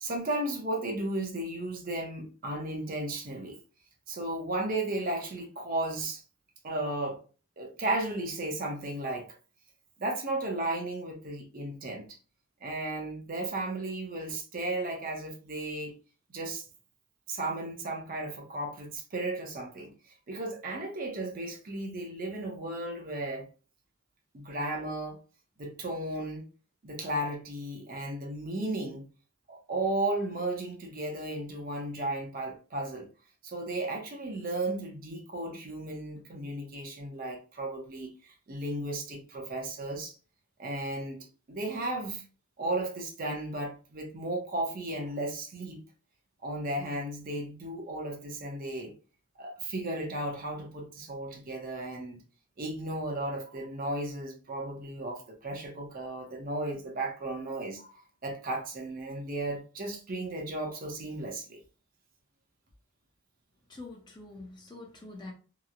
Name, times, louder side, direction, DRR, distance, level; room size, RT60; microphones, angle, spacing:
voice 1, 0.0-3.6 4.1-6.2 6.6-7.2 7.6-9.3 10.0-12.1 12.6-15.9 16.3-16.6 17.3-19.9 20.3-23.5 24.3-25.2 25.6-26.5 26.8-29.1 29.5-33.1 33.4-40.1 40.6-42.2 42.6-45.8 46.4-48.9 49.4-52.2 52.6-61.6, right 2 dB, 45° right, 0.6 m, -34 dB
voice 2, 63.7-65.3, left 2 dB, 20° left, 0.5 m, -45 dB
2.8 x 2.0 x 2.4 m
head